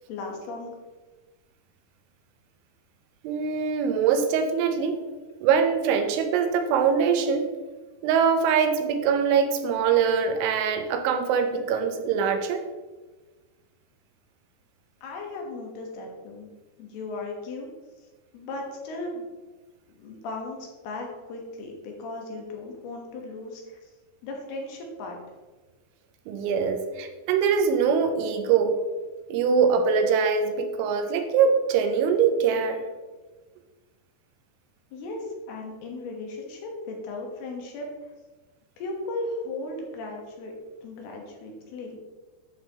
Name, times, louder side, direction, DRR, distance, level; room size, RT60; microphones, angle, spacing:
voice 1, 0.1-0.7 15.0-16.5 16.8-17.7 18.3-19.2 19.9-20.6 20.8-23.8 24.2-25.2 34.9-37.9 38.8-40.5 40.8-42.0, left 2 dB, 70° left, 1 dB, 2.9 m, -36 dB
voice 2, 3.2-5.0 5.4-7.5 8.0-12.6 26.3-28.8 29.3-32.8, right 6 dB, 90° right, 6 dB, 3.3 m, -23 dB
9.4 x 7.7 x 2.9 m, 1.3 s
omnidirectional pair, 5.3 m